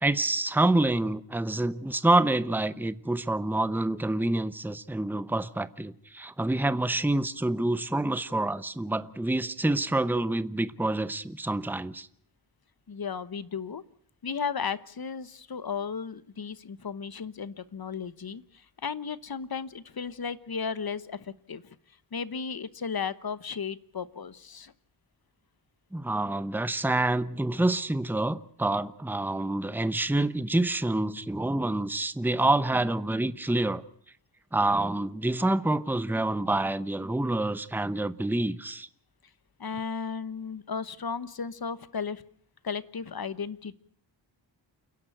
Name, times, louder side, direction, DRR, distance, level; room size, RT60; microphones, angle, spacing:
voice 1, 0.0-12.1 25.9-33.8 34.5-38.9, right 2 dB, 5° right, 0.8 m, -27 dB
voice 2, 12.9-13.8 14.2-18.4 18.8-21.7 22.1-24.7 39.6-42.2 42.6-43.7, left 6 dB, 55° left, 1.1 m, -35 dB
29.0 x 11.0 x 9.1 m
wide cardioid pair, 85°, 43 cm